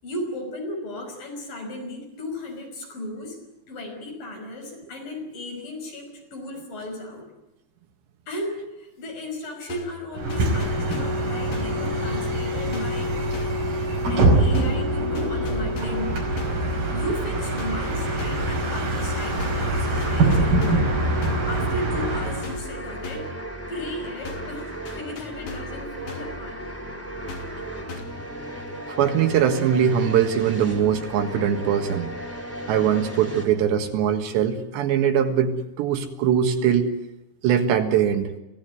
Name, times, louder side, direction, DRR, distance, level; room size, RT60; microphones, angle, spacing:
voice 1, 0.0-3.4 3.7-7.3 8.3-13.2 14.1-16.5 16.9-20.9 21.5-23.3 23.7-26.6, left 1 dB, 50° left, 2 dB, 7.2 m, -35 dB
sound 1, 9.7-10.0 10.3-11.2 11.5-11.8 12.7-13.0 13.3-13.7 14.5-14.9 15.1-16.1 16.4-16.7 17.6-17.9 18.2-18.5 19.4-19.7 20.0-20.9 21.2-21.5 22.4-22.8 23.0-23.4 24.2-24.6 24.9-25.8 26.1-26.4 27.3-27.6 27.9-28.2, left 5 dB, 65° left, 4.7 m, -39 dB
Bus, 10.1-22.6, right 2 dB, 55° right, 7.0 m, -24 dB
sound 2, 19.5-33.5, right 1 dB, 5° left, 2.6 m, -36 dB
voice 2, 28.9-32.1 32.7-36.9 37.4-38.3, right 8 dB, 75° right, 6 dB, 3.8 m, -21 dB
27.0 x 17.0 x 9.4 m, 0.89 s
omnidirectional pair, 5.1 m